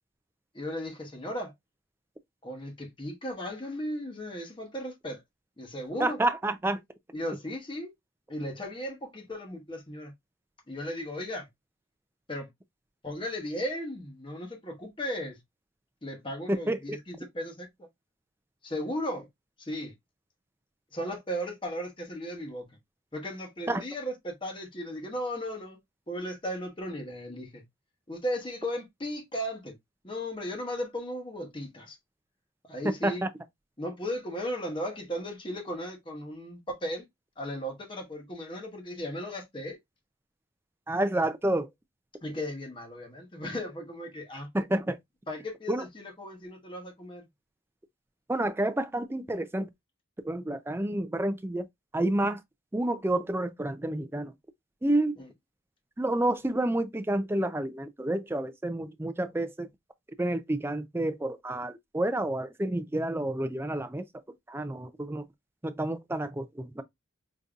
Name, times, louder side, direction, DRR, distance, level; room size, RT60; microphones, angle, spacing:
voice 1, 0.5-1.5 2.4-5.2 5.6-6.2 7.1-7.9 8.3-10.1 10.7-11.5 12.3-12.5 13.0-15.4 16.0-17.9 18.6-19.3 19.6-19.9 20.9-22.8 23.1-25.8 26.1-27.6 28.1-29.8 30.0-32.0 32.6-33.2 33.8-37.1 37.4-39.8 42.2-44.5 45.3-47.3 55.2-55.3, equal, 25° left, 0.9 m, -36 dB
voice 2, 6.0-6.8 16.7-17.0 23.7-23.8 33.0-33.3 40.9-41.7 44.5-45.0 45.7-45.8 48.3-49.7 50.2-51.7 51.9-52.4 52.7-54.3 54.8-55.1 56.0-59.7 60.2-64.1 64.5-65.3 65.6-66.8, right 1 dB, 10° right, 0.3 m, -29 dB
5.1 x 2.7 x 2.3 m
head